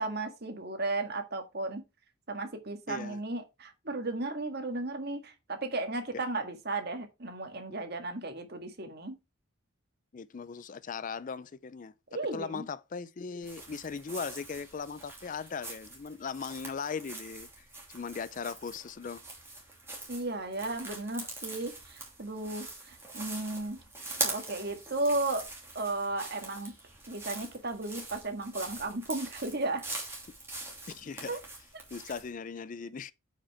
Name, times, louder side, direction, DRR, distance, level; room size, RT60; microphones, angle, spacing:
voice 1, 0.0-1.8 2.3-9.1 12.1-12.7 20.1-23.8 24.2-25.5 25.8-26.7 27.1-29.8 31.3-31.4, right 2 dB, 50° right, 1.7 m, -34 dB
voice 2, 2.9-3.2 6.1-6.2 10.1-11.9 12.3-17.7 17.9-19.2 30.9-31.4 31.9-33.1, left 5 dB, 40° left, 0.4 m, -38 dB
sound 1, 13.4-32.3, right 2 dB, 10° right, 2.8 m, -43 dB
8.5 x 5.1 x 4.6 m
head